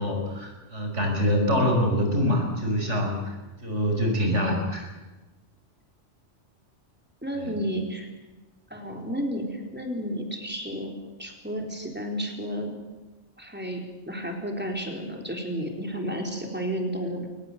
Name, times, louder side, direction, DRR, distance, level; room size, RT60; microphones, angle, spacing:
voice 1, 0.0-3.3 3.6-4.9 7.4-7.5, equal, 80° right, 2 dB, 6.1 m, -25 dB
voice 2, 7.2-8.1 8.7-10.9 11.2-12.8 13.4-17.3, equal, 10° right, 2 dB, 4.2 m, -32 dB
22.5 x 20.0 x 8.1 m, 1.1 s
omnidirectional pair, 1.2 m